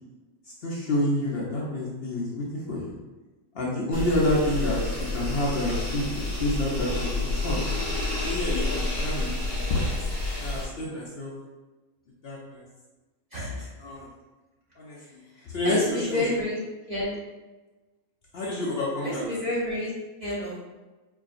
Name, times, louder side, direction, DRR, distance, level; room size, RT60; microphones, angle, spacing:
voice 1, 0.6-2.9 3.5-6.1 6.4-7.6 8.2-9.4 9.7-9.9 10.4-11.3 12.2-12.6 13.8-14.0 14.8-15.2 15.5-16.3 18.3-19.3, left 1 dB, 55° left, -5 dB, 0.7 m, -28 dB
sound 1, 3.9-10.6, left 2 dB, 20° left, 0.9 m, -29 dB
voice 2, 13.3-13.7 15.6-16.6 16.9-17.1 19.0-19.9 20.2-20.6, left 1 dB, 40° right, -7 dB, 0.6 m, -29 dB
4.7 x 2.7 x 2.5 m, 1.2 s
omnidirectional pair, 1.5 m